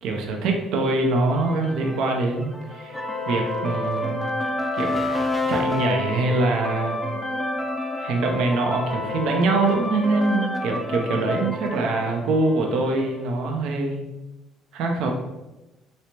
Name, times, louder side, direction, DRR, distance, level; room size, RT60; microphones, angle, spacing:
voice 1, 0.0-3.0 3.3-4.2 4.7-5.0 5.5-7.0 8.0-14.1 14.7-15.1, right 3 dB, 70° right, 2 dB, 0.5 m, -24 dB
sound 1, 1.4-13.2, left 2 dB, 10° left, 0.6 m, -29 dB
3.1 x 3.1 x 2.8 m, 1.0 s
hypercardioid pair, 65°, 0 cm